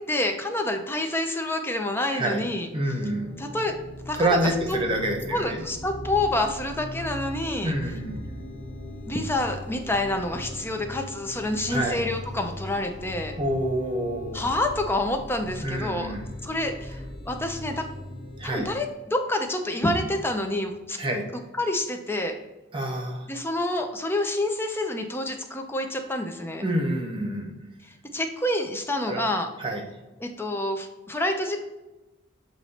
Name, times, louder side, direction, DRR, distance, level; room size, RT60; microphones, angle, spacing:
voice 1, 0.0-2.7 3.4-3.8 4.1-4.5 5.3-7.7 9.0-13.4 14.3-16.2 16.4-17.9 18.4-21.0 21.6-22.4 23.3-26.7 28.1-29.5 30.2-31.6, left 1 dB, 10° left, 5 dB, 0.6 m, -28 dB
voice 2, 2.1-3.4 4.1-5.6 7.6-8.3 11.7-12.0 13.4-14.5 15.6-16.3 18.4-18.7 21.0-21.2 22.7-23.3 26.6-27.6 29.0-29.3 29.6-29.8, right 1 dB, 25° right, 2 dB, 0.9 m, -27 dB
sound 1, 3.0-18.7, left 1 dB, 45° left, 1.2 m, -39 dB
7.4 x 3.0 x 4.2 m, 1.1 s
head